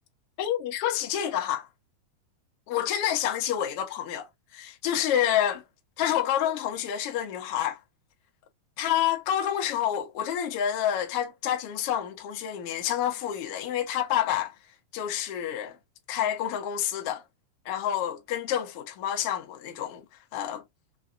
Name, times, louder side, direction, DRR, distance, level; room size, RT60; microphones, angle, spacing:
voice 1, 0.4-1.7 2.7-5.6 6.0-7.8 8.8-14.5 14.9-15.8 16.1-17.2 17.6-20.0 20.3-20.6, left 10 dB, 70° left, 1.4 m, -28 dB
5.3 x 2.3 x 2.5 m
omnidirectional pair, 4.0 m